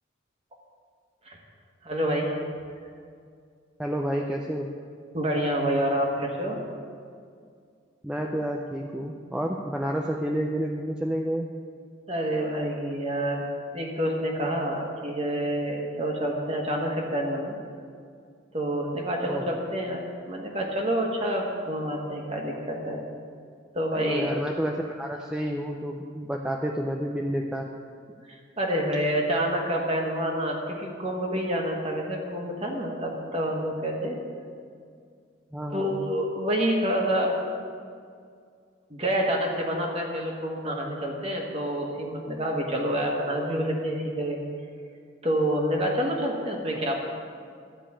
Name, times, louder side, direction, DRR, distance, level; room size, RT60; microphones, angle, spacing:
voice 1, 1.8-2.4 5.1-6.6 12.1-13.4 13.7-17.5 18.5-20.0 20.3-23.0 23.7-24.3 28.6-34.1 35.7-37.3 38.9-44.4 45.2-47.0, equal, 30° right, 0 dB, 1.5 m, -28 dB
voice 2, 3.8-4.7 8.0-11.5 19.3-19.4 23.9-27.7 35.5-36.0, equal, 5° right, 0 dB, 0.5 m, -30 dB
12.5 x 5.2 x 8.7 m, 2.2 s
head